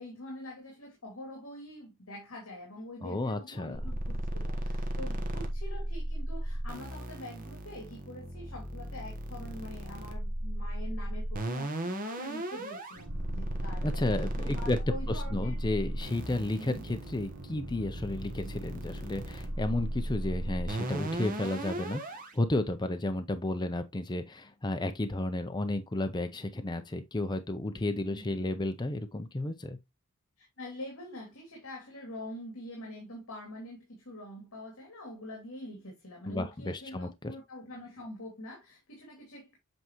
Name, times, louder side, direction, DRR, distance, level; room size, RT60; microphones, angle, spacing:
voice 1, 0.0-14.0 14.4-15.6 16.6-16.8 18.3-18.5 28.1-28.4 30.4-39.6, left 1 dB, 65° left, 2.5 m, -45 dB
voice 2, 3.0-3.8 13.8-14.8 15.1-29.8 36.3-37.1, left 2 dB, 20° left, 0.6 m, -32 dB
sound 1, 3.8-22.3, right 1 dB, 40° right, 1.2 m, -36 dB
sound 2, 12.9-20.7, right 2 dB, 60° right, 1.4 m, -48 dB
7.9 x 4.7 x 3.0 m
head